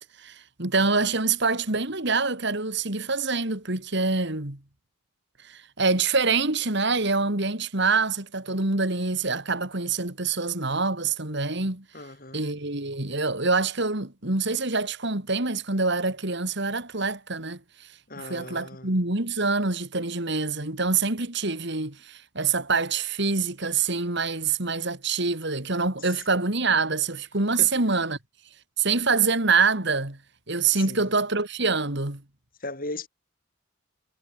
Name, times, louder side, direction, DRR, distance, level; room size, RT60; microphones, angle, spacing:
voice 1, 0.2-4.6 5.5-11.8 12.3-17.6 18.2-28.2 28.8-30.2 30.5-32.2, right 4 dB, 55° right, 2.8 m, -25 dB
voice 2, 11.9-12.4 18.1-18.9 26.0-26.2 27.6-27.7 30.7-31.1 32.6-33.1, left 2 dB, 40° left, 8.0 m, -37 dB
head